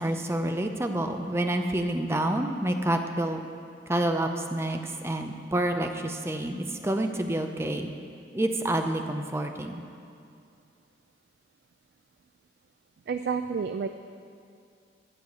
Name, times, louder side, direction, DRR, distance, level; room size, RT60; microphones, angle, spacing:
voice 1, 0.0-3.4 3.9-7.9 8.3-9.8, right 1 dB, 15° right, 5 dB, 0.6 m, -28 dB
voice 2, 13.1-13.9, right 5 dB, 60° right, 9 dB, 0.3 m, -29 dB
11.5 x 4.8 x 8.3 m, 2.4 s
head